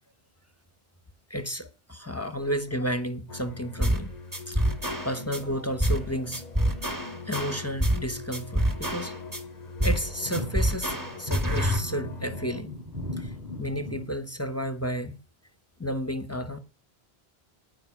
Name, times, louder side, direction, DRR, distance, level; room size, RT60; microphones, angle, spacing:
voice 1, 1.3-4.1 4.5-4.6 5.0-6.4 7.3-9.1 9.8-12.8 13.2-15.2 15.8-16.6, equal, 15° left, 0.9 m, -32 dB
sound 1, 3.3-12.6, left 4 dB, 45° left, 0.8 m, -42 dB
sound 2, 3.8-4.1 4.3-5.4 5.8-6.1 6.3-8.1 8.3-9.4 9.8-10.1 10.3-11.8, equal, 20° right, 1.5 m, -26 dB
sound 3, 6.8-8.3 8.6-14.1, left 1 dB, 45° right, 3.6 m, -39 dB
10.5 x 9.7 x 6.0 m
omnidirectional pair, 1.1 m